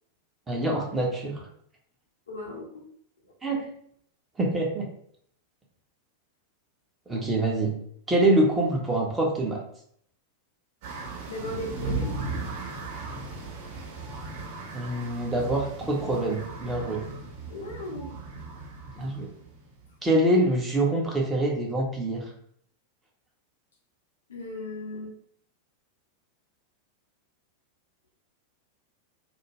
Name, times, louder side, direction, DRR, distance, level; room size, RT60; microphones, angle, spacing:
voice 1, 0.5-1.5 3.4-3.7 4.4-4.9 7.1-7.7 8.1-9.6 14.7-17.0 19.0-19.3 20.0-22.2, right 1 dB, 15° right, -2 dB, 0.8 m, -25 dB
voice 2, 2.3-2.8 3.3-3.4 7.1-7.2 11.3-12.2 17.5-18.2 24.3-25.1, left 1 dB, 65° left, 0 dB, 0.7 m, -37 dB
sound 1, 10.8-19.9, right 3 dB, 50° right, 1.0 m, -37 dB
2.5 x 2.1 x 3.1 m, 0.66 s
figure-of-eight pair, 90°, 0 cm